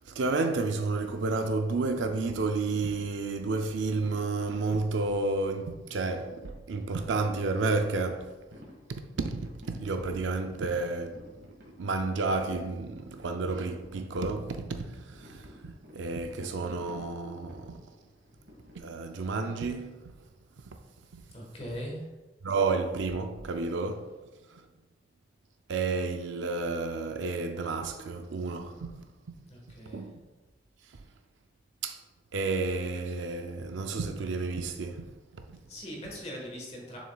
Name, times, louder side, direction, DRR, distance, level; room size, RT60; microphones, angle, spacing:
voice 1, 0.0-8.3 8.9-11.2 11.8-17.8 18.8-20.1 20.7-20.8 21.1-21.2 22.4-24.1 24.5-24.6 25.7-28.9 29.9-30.2 31.8-32.0 32.3-35.1 35.3-35.6, right 3 dB, 85° right, 0.5 m, -31 dB
sound 1, 2.4-18.8, equal, 60° right, 1.7 m, -55 dB
voice 2, 21.3-22.0 29.5-30.1 35.7-37.0, equal, 35° left, 1.4 m, -40 dB
7.2 x 6.1 x 2.3 m
head